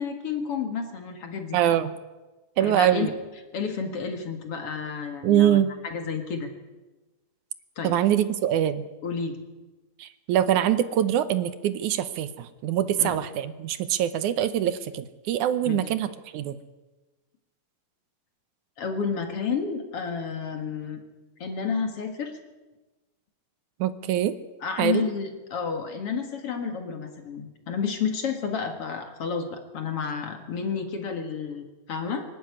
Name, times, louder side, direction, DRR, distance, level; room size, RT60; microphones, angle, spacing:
voice 1, 0.0-1.6 2.6-3.1 3.5-5.6 5.8-6.5 7.8-7.9 9.0-9.4 13.0-13.2 15.7-15.8 18.8-21.0 21.4-22.3 24.6-32.2, left 6 dB, 50° left, 6 dB, 2.5 m, -30 dB
voice 2, 1.5-1.9 2.6-3.1 5.2-5.7 7.8-8.9 10.0-16.6 23.8-24.4 24.8-25.0, right 11 dB, 75° right, 13 dB, 2.3 m, -24 dB
24.5 x 12.0 x 9.7 m, 1.1 s
omnidirectional pair, 3.7 m